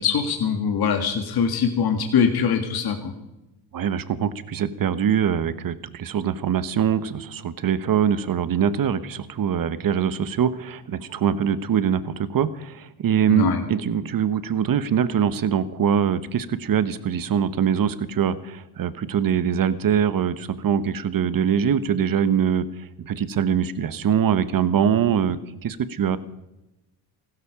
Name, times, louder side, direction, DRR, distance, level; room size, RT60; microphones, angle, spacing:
voice 1, 0.0-3.1 13.3-13.6, left 6 dB, 55° left, 5 dB, 2.0 m, -22 dB
voice 2, 3.7-26.2, right 8 dB, 45° right, 14 dB, 1.2 m, -23 dB
15.5 x 13.0 x 5.1 m, 0.94 s
supercardioid pair, 75°, 45 cm